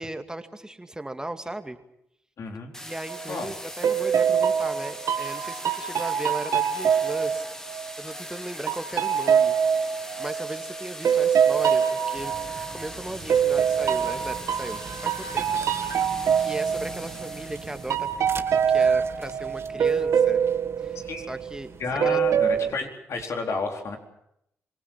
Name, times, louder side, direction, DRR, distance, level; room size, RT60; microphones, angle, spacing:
voice 1, 0.0-1.8 2.8-7.5 8.0-12.3 12.7-15.5 16.4-20.4 20.8-21.7 22.0-22.2, right 1 dB, 15° right, 8 dB, 2.2 m, -37 dB
voice 2, 2.4-2.7 3.3-3.5 21.0-21.3 21.8-24.0, left 4 dB, 65° left, 2 dB, 4.3 m, -31 dB
sound 1, 2.7-18.2, left 1 dB, 10° left, 2.0 m, -41 dB
sound 2, 3.1-3.4 3.8-8.1 8.7-12.9 13.3-17.5 17.9-21.6 22.0-22.7, right 7 dB, 70° right, 1.7 m, -24 dB
sound 3, 12.1-22.7, right 5 dB, 50° right, 1.5 m, -42 dB
26.0 x 19.0 x 7.4 m, 0.78 s
supercardioid pair, 55°, 5 cm